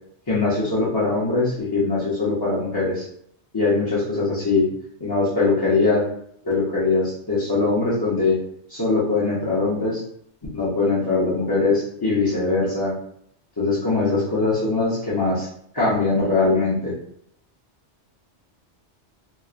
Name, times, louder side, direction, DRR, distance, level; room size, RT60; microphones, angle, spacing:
voice 1, 0.3-3.0 3.5-4.7 5.0-6.0 6.4-8.4 8.7-10.0 10.5-12.9 13.6-15.5 15.7-16.9, left 3 dB, 25° left, -10 dB, 0.5 m, -21 dB
2.9 x 2.0 x 2.4 m, 0.67 s
omnidirectional pair, 1.2 m